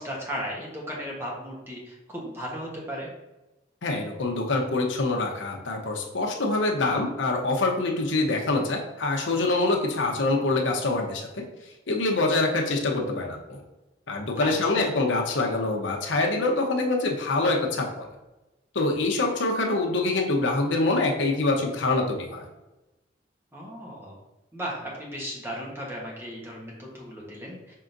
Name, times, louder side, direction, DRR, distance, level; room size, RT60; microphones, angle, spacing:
voice 1, 0.0-3.1 14.4-14.5 23.5-24.2 24.5-27.8, equal, 15° right, -3 dB, 1.0 m, -35 dB
voice 2, 3.8-13.6 14.1-18.1 18.7-22.4, left 2 dB, 85° left, 1 dB, 0.8 m, -25 dB
5.7 x 3.7 x 2.6 m, 1.0 s
head